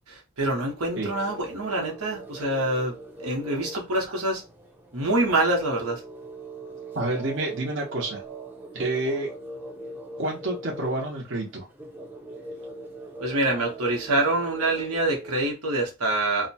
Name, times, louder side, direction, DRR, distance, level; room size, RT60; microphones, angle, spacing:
voice 1, 0.1-4.4 4.9-6.0 13.2-16.5, right 2 dB, 85° right, 0.9 m, -26 dB
sound 1, 0.8-15.4, right 2 dB, 10° right, 0.5 m, -41 dB
voice 2, 6.9-8.2 8.7-9.3 10.2-11.7, right 2 dB, 55° right, 0.8 m, -29 dB
2.7 x 2.1 x 2.7 m
head